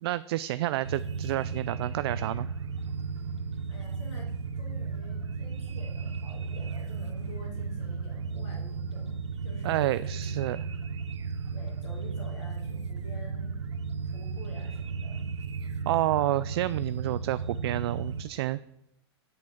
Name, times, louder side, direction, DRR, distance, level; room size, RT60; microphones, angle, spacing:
voice 1, 0.0-2.5 9.6-10.6 15.9-18.6, right 15 dB, 65° right, 16 dB, 0.4 m, -29 dB
sound 1, 0.8-18.2, right 5 dB, 90° right, 0.8 m, -34 dB
voice 2, 3.7-10.2 11.5-13.6 14.0-15.3, left 3 dB, 70° left, -8 dB, 4.3 m, -49 dB
7.8 x 5.6 x 7.7 m, 0.79 s
hypercardioid pair, 110°, 15 cm